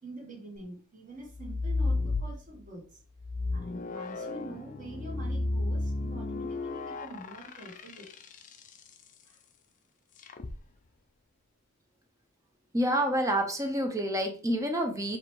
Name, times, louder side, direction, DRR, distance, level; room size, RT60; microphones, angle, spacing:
voice 1, 0.0-3.0 3.5-8.1 9.2-9.4, right 1 dB, 35° right, 0 dB, 1.4 m, -45 dB
sound 1, 1.3-2.7 3.2-8.7 10.2-10.6, left 2 dB, 35° left, 0.5 m, -33 dB
voice 2, 12.7-15.2, equal, 15° right, 4 dB, 0.7 m, -28 dB
4.8 x 3.3 x 3.1 m, 0.39 s
head